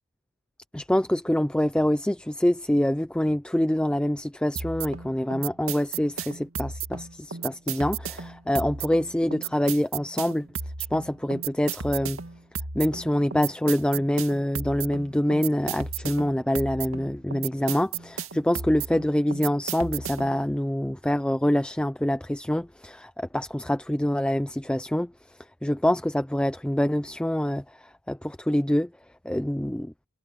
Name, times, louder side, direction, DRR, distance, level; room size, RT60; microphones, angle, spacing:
voice 1, 0.7-10.5 10.9-12.2 12.7-28.9 29.2-29.9, left 1 dB, 5° left, 0.4 m, -25 dB
sound 1, 4.6-20.4, right 6 dB, 75° right, 2.3 m, -34 dB
head